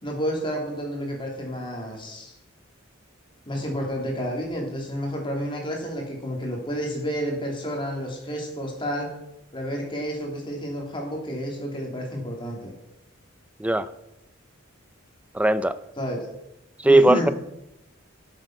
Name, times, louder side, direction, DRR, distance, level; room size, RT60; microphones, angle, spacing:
voice 1, 0.0-2.3 3.5-9.2 9.5-12.7 16.0-16.2 16.8-17.3, equal, 25° left, 3.0 m, -30 dB
voice 2, 15.3-15.8 16.8-17.3, right 1 dB, 5° right, 0.4 m, -18 dB
12.5 x 7.9 x 6.0 m
head